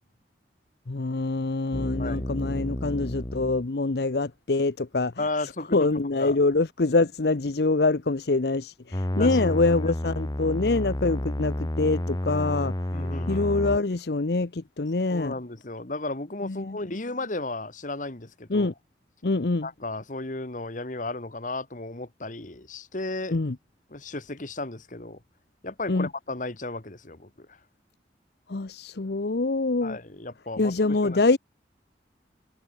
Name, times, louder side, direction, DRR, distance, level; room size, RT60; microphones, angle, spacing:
voice 1, 0.9-5.1 5.7-12.7 13.3-15.3 16.4-16.8 18.5-18.7 19.2-19.7 23.3-23.6 25.9-26.1 28.5-30.0 30.6-31.4, left 3 dB, 60° left, 0.8 m, -25 dB
sound 1, 1.7-3.7 8.9-13.8, left 1 dB, 20° left, 1.1 m, -30 dB
voice 2, 5.2-6.4 9.1-9.8 12.9-13.5 15.1-18.7 19.6-23.4 23.9-25.2 25.6-27.6 29.8-31.2, left 2 dB, 45° left, 1.7 m, -34 dB
head